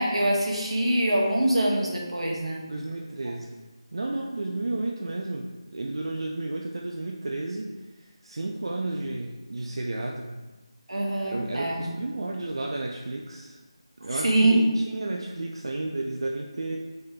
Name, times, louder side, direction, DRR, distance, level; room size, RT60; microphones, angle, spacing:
voice 1, 0.0-2.6 10.9-11.9 14.2-14.6, right 1 dB, 90° right, -1 dB, 1.0 m, -24 dB
voice 2, 2.7-3.6 3.9-10.4 11.2-13.6 14.0-16.8, right 2 dB, 60° right, 0 dB, 0.3 m, -32 dB
3.5 x 3.4 x 2.7 m, 1.2 s
figure-of-eight pair, 175°, 3 cm